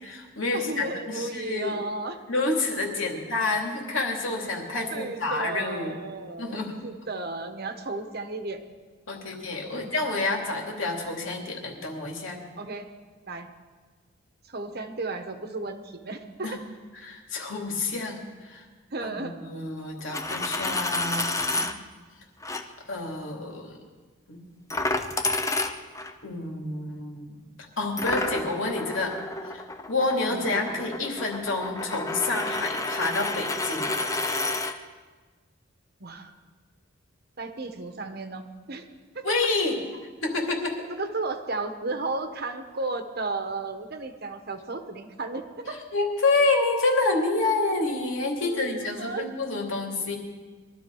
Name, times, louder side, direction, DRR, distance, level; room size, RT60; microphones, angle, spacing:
voice 1, 0.0-1.8 2.3-6.0 6.4-6.7 9.1-12.4 16.4-16.6 17.0-18.6 19.0-21.3 21.6-21.7 22.9-23.8 24.3-24.4 26.2-27.4 27.8-29.2 29.5-33.9 39.2-39.8 40.2-40.8 45.9-50.2, left 3 dB, 75° left, 0 dB, 2.9 m, -28 dB
voice 2, 0.5-2.2 3.0-3.1 4.9-8.6 9.7-9.9 12.6-12.9 13.3-13.5 14.4-16.6 18.9-19.4 30.3-30.8 36.0-36.3 37.4-38.9 39.1-39.3 40.9-45.8 48.4-49.3, right 3 dB, 50° right, 7 dB, 1.3 m, -34 dB
Coin (dropping), 20.0-21.7 22.4-22.6 24.7-26.1 28.0-34.7, left 2 dB, 15° left, 0.8 m, -30 dB
22.5 x 13.0 x 4.8 m, 1.4 s
head